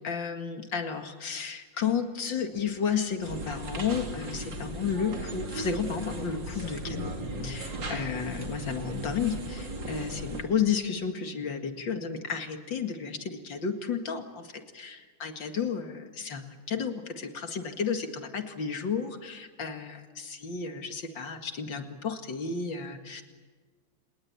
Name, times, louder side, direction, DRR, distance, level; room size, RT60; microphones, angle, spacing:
voice 1, 0.0-7.1 7.3-23.2, left 6 dB, 90° left, 5 dB, 2.8 m, -32 dB
sound 1, 3.2-10.4, right 1 dB, 80° right, 3.4 m, -37 dB
30.0 x 20.0 x 8.7 m, 1.4 s
omnidirectional pair, 2.0 m